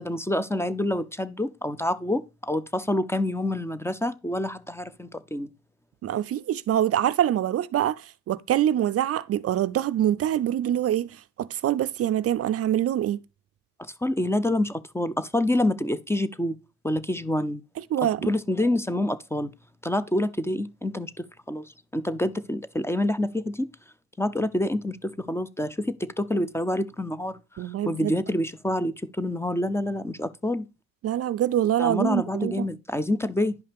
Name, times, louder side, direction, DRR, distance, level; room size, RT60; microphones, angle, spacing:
voice 1, 0.0-5.5 13.8-16.6 16.8-17.6 18.2-19.5 19.8-23.7 24.2-30.7 31.8-33.6, left 1 dB, 10° left, 0.5 m, -27 dB
voice 2, 6.0-11.1 11.4-13.2 17.9-18.3 27.6-28.1 31.0-32.6, right 11 dB, 50° right, 0.4 m, -25 dB
10.5 x 5.5 x 3.4 m
cardioid pair, 90°, 30 cm